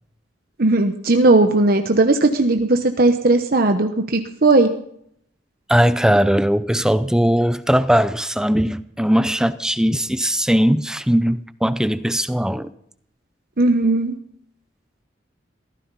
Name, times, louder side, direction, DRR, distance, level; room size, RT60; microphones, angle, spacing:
voice 1, 0.6-4.7 13.6-14.2, right 2 dB, 50° right, 1.1 m, -17 dB
voice 2, 5.7-12.7, equal, 5° right, 0.5 m, -19 dB
23.0 x 15.5 x 4.1 m
head